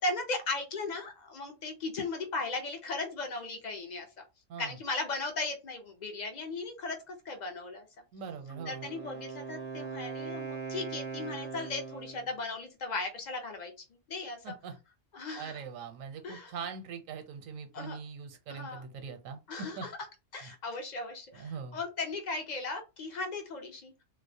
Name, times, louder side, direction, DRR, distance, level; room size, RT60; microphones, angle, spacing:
voice 1, 0.0-4.1 4.6-7.9 8.7-13.7 14.1-14.4 15.1-15.6 16.2-16.5 17.7-18.0 18.5-18.8 19.5-19.9 20.3-23.9, left 3 dB, 65° left, 0.4 m, -37 dB
voice 2, 8.1-8.9 14.4-14.8 15.4-19.9 20.4-20.5 21.3-21.8, right 6 dB, 85° right, 1.0 m, -42 dB
Wind instrument woodwind instrument, 8.5-12.3, right 5 dB, 45° right, 0.5 m, -40 dB
2.3 x 2.0 x 2.6 m
omnidirectional pair, 1.4 m